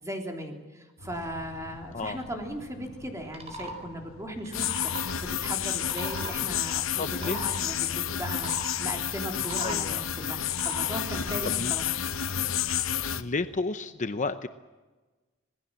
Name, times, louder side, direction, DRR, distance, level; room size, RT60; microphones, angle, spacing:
voice 1, 0.0-8.5 8.8-12.0, equal, 15° right, 2 dB, 3.4 m, -38 dB
sound 1, 1.0-13.6, left 1 dB, 90° left, 1.6 m, -49 dB
sound 2, 3.2-3.8 4.4-5.0 5.7-6.3 7.0-7.6 8.3-8.7 9.3-9.9 10.4-10.9, right 2 dB, 30° right, 4.4 m, -39 dB
sound 3, 4.5-13.2, left 9 dB, 70° left, 0.9 m, -30 dB
voice 2, 7.0-7.4 9.6-10.1 11.2-11.7 13.1-14.5, left 3 dB, 35° left, 10 dB, 0.8 m, -32 dB
26.5 x 19.0 x 7.6 m, 1.2 s
head